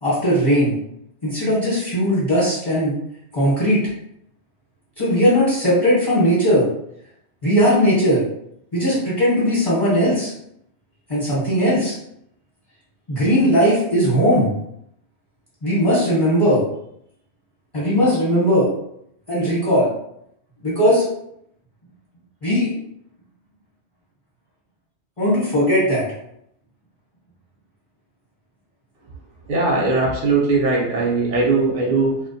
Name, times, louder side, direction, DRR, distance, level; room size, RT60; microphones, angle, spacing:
voice 1, 0.0-0.7 1.2-2.9 3.3-3.8 5.0-6.7 7.4-8.2 8.7-10.3 11.1-11.9 13.1-14.5 15.6-16.6 17.7-18.7 19.3-19.9 20.6-21.1 22.4-22.7 25.2-26.0, equal, 30° left, -9 dB, 0.9 m, -18 dB
voice 2, 29.5-32.2, right 3 dB, 60° right, -2 dB, 0.6 m, -19 dB
2.2 x 2.1 x 2.6 m, 0.74 s
omnidirectional pair, 1.2 m